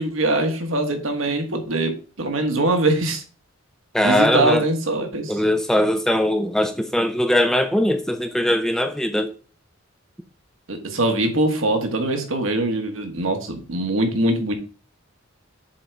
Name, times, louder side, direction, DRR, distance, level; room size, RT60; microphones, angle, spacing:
voice 1, 0.0-3.2 4.0-5.4 10.7-14.5, right 2 dB, 70° right, 1.4 m, -22 dB
voice 2, 3.9-4.6 5.3-9.3, left 1 dB, 5° left, 0.5 m, -20 dB
7.2 x 4.0 x 4.6 m
head